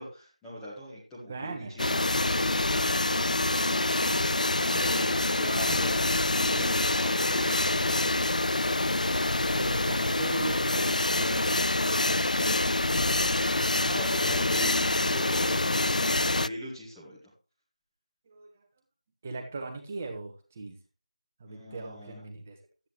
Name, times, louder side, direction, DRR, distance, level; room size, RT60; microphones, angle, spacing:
voice 1, 0.0-2.0 4.6-8.5 13.2-14.8 15.1-17.2 21.5-22.2, equal, 5° left, -7 dB, 1.4 m, -42 dB
voice 2, 1.3-1.7 9.5-12.0 18.3-18.5 19.2-20.8 21.4-22.6, right 3 dB, 15° right, 3 dB, 1.3 m, -38 dB
sound 1, 1.8-16.5, left 2 dB, 85° left, 0.4 m, -26 dB
13.0 x 9.3 x 3.1 m, 0.35 s
figure-of-eight pair, 175°, 4 cm